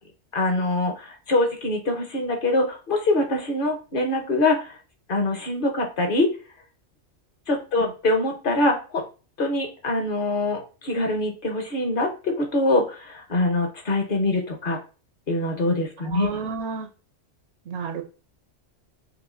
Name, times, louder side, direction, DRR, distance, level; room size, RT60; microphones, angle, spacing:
voice 1, 0.3-4.8 5.1-6.3 7.5-9.0 9.4-14.8 15.3-16.3, left 2 dB, 50° left, 3 dB, 0.9 m, -24 dB
voice 2, 16.0-16.9 17.7-18.0, right 5 dB, 70° right, 6 dB, 0.8 m, -31 dB
6.1 x 2.2 x 2.5 m, 0.34 s
omnidirectional pair, 1.3 m